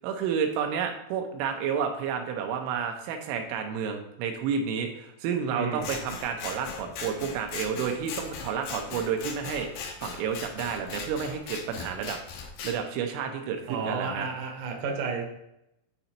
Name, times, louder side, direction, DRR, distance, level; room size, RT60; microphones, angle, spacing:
voice 1, 0.0-12.2 12.6-14.3, right 7 dB, 85° right, 4 dB, 3.4 m, -30 dB
voice 2, 5.5-5.9 13.7-15.3, right 4 dB, 70° right, 1 dB, 2.1 m, -32 dB
Scissors, 5.8-12.8, left 5 dB, 75° left, 2.9 m, -39 dB
9.6 x 3.9 x 4.4 m, 0.82 s
omnidirectional pair, 5.6 m